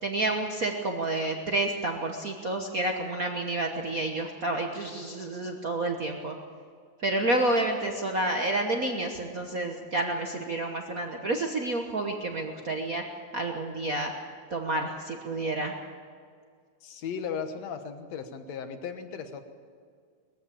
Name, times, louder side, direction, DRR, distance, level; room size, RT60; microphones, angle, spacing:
voice 1, 0.0-6.4 7.0-13.0 13.3-14.1 14.5-15.7, right 2 dB, 60° right, 2 dB, 0.8 m, -29 dB
voice 2, 16.8-19.4, left 6 dB, 65° left, 8 dB, 2.3 m, -36 dB
20.5 x 15.0 x 8.6 m, 2.1 s
omnidirectional pair, 3.4 m